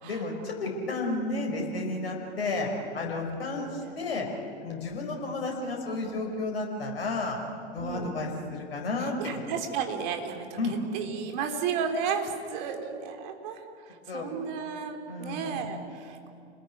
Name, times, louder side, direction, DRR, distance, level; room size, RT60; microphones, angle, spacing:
voice 1, 0.0-4.3 4.6-7.4 7.7-9.4 10.6-10.8 14.1-14.3 15.1-15.6, left 2 dB, 60° left, 1 dB, 5.2 m, -32 dB
voice 2, 3.8-4.3 7.8-8.1 9.2-13.6 14.1-16.3, right 6 dB, 45° right, 4 dB, 3.5 m, -33 dB
29.5 x 20.0 x 9.8 m, 2.4 s
figure-of-eight pair, 100°, 32 cm